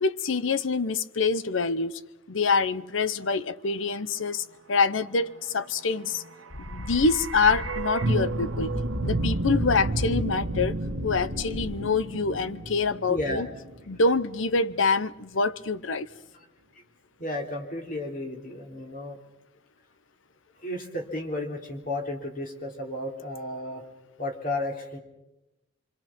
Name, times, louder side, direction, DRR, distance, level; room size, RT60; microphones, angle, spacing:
voice 1, 0.0-2.0 2.3-6.2 6.6-8.7 9.0-10.7 11.0-13.5 13.9-16.1, left 4 dB, 80° left, 0.9 m, -26 dB
sound 1, 6.3-14.4 14.7-14.8, right 2 dB, 85° right, 1.2 m, -31 dB
sound 2, 6.5-11.8, left 1 dB, 60° left, 1.4 m, -38 dB
voice 2, 13.1-13.5 17.2-19.2 20.6-23.8 24.2-25.0, left 1 dB, 45° left, 3.4 m, -33 dB
25.5 x 24.5 x 6.1 m
head